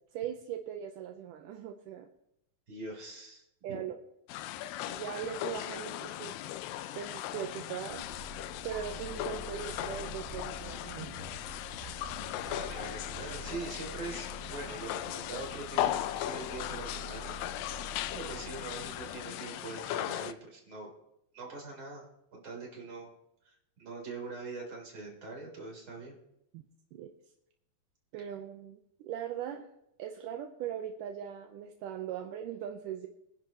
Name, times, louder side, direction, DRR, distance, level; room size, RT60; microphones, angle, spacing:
voice 1, 0.1-2.1 3.6-4.0 4.9-6.4 6.9-8.0 8.6-11.2 26.5-26.6 26.9-27.1 28.1-29.7 30.0-33.1, right 9 dB, 75° right, 4 dB, 2.1 m, -40 dB
voice 2, 2.7-3.8 12.5-17.7 18.1-20.9 21.3-23.1 23.8-26.2, right 3 dB, 35° right, -1 dB, 4.1 m, -43 dB
sound 1, 4.3-20.3, left 13 dB, 80° left, 2.2 m, -38 dB
sound 2, 7.9-19.2, right 1 dB, 15° right, 3.9 m, -47 dB
23.0 x 10.5 x 3.0 m, 0.81 s
omnidirectional pair, 4.2 m